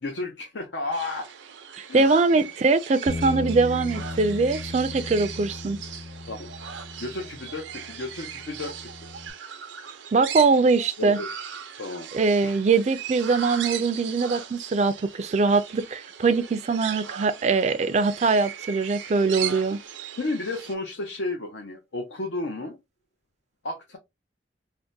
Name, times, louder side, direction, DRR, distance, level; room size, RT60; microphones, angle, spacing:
voice 1, 0.0-1.3 1.9-2.0 2.3-2.5 6.3-6.5 7.0-9.1 11.0-11.3 11.8-12.1 12.4-12.5 20.2-22.8 23.6-24.0, left 2 dB, 80° left, 0.7 m, -32 dB
sound 1, 0.9-20.7, right 8 dB, 90° right, 0.5 m, -38 dB
voice 2, 1.8-5.8 10.1-11.2 12.1-19.8, right 4 dB, 40° right, 0.3 m, -22 dB
Bass guitar, 3.1-9.3, left 2 dB, 25° left, 0.4 m, -37 dB
3.4 x 2.1 x 2.6 m
head